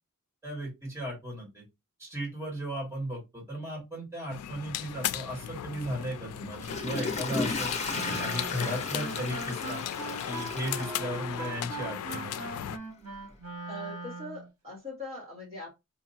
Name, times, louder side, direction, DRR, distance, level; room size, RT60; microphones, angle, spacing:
voice 1, 0.4-1.6 2.0-7.7 8.2-9.8 10.3-12.5, equal, 10° right, -3 dB, 2.0 m, -36 dB
sound 1, 4.3-12.8, left 10 dB, 85° left, 0.4 m, -37 dB
Water / Toilet flush, 6.4-11.7 12.1-12.2, left 3 dB, 30° left, 1.0 m, -35 dB
Wind instrument woodwind instrument, 7.9-14.5, right 2 dB, 75° right, 1.2 m, -40 dB
voice 2, 10.8-11.2 13.7-15.7, left 2 dB, 30° right, -5 dB, 1.8 m, -42 dB
5.0 x 2.6 x 2.7 m, 0.22 s
head